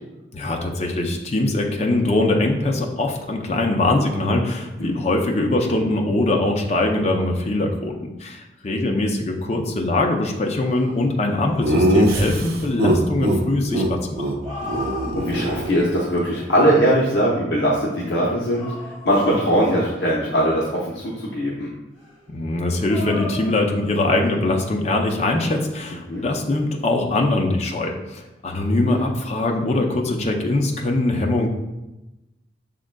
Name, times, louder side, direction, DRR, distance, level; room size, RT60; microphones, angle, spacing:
voice 1, 0.3-14.3 22.3-31.5, left 2 dB, 35° left, 2 dB, 0.5 m, -22 dB
sound 1, 10.2-12.1 14.2-15.8 16.8-17.4 18.3-20.2 22.0-24.5, left 3 dB, 40° right, 1.5 m, -38 dB
Laughter, 11.6-13.4 13.7-13.9 14.2-14.3 14.6-16.2, right 1 dB, 55° right, 0.6 m, -21 dB
voice 2, 15.1-21.7 26.1-26.3 28.8-29.1, equal, 70° left, -5 dB, 0.7 m, -21 dB
6.1 x 3.7 x 2.2 m, 1.0 s
head